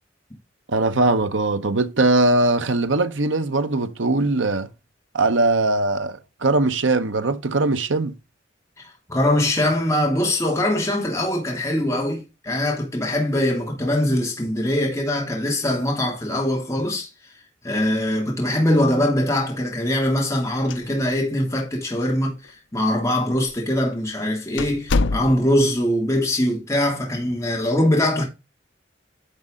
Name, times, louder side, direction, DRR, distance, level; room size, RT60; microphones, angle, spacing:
voice 1, 0.7-4.7 5.1-8.2, right 2 dB, 90° right, 1.0 m, -20 dB
voice 2, 8.8-17.1 17.6-28.2, left 1 dB, 15° left, 2.7 m, -22 dB
sound 1, 20.7-21.3 21.6-21.7 22.4-22.5 23.3-23.5 23.9-24.0 24.6-25.7, left 3 dB, 80° left, 0.6 m, -25 dB
10.5 x 5.5 x 3.7 m
head